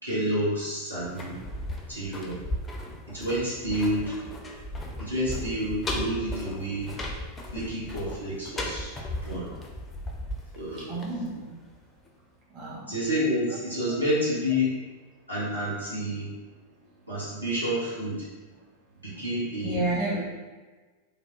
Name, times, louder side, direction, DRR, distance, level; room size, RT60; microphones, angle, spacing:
voice 1, 0.0-1.4 1.9-2.4 3.1-4.2 5.0-6.9 7.5-8.9 9.2-9.5 10.5-11.0 12.9-14.8 15.3-16.3 17.1-18.2 19.0-19.8, equal, 85° right, -8 dB, 0.9 m, -29 dB
sound 1, 1.0-11.8 12.1-12.2, left 1 dB, 15° left, 0.4 m, -36 dB
voice 2, 10.9-11.6 12.5-12.9 19.1-19.2 19.6-20.2, right 2 dB, 35° right, -6 dB, 0.9 m, -30 dB
3.4 x 2.0 x 2.4 m, 1.3 s
figure-of-eight pair, 90°, 0 cm